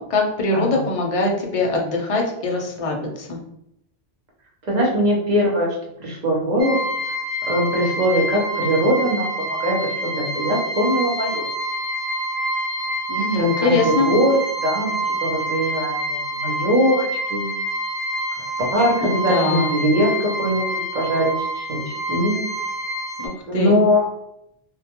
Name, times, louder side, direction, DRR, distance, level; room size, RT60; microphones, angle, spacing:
voice 1, 0.0-3.4 13.1-14.1 19.0-19.7 23.2-23.8, left 2 dB, 50° left, 0 dB, 0.4 m, -22 dB
voice 2, 4.7-6.9 7.5-11.4 13.4-14.4 14.6-17.5 18.6-20.7 20.9-22.4 23.5-24.1, equal, 50° right, -2 dB, 0.7 m, -21 dB
sound 1, 6.6-23.3, right 1 dB, 85° right, 1.1 m, -27 dB
2.2 x 2.2 x 2.8 m, 0.77 s
omnidirectional pair, 1.1 m